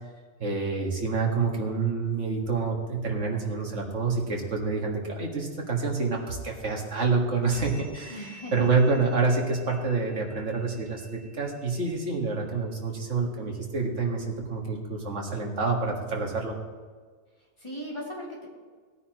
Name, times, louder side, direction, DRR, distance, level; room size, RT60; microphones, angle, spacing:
voice 1, 0.4-8.2 8.5-16.6, right 4 dB, 85° right, 0 dB, 2.1 m, -27 dB
sound 1, 7.5-12.4, right 1 dB, 10° right, 3.7 m, -52 dB
voice 2, 8.1-8.7 17.6-18.5, equal, 25° left, -5 dB, 3.1 m, -37 dB
18.0 x 9.4 x 3.1 m, 1.5 s
omnidirectional pair, 1.2 m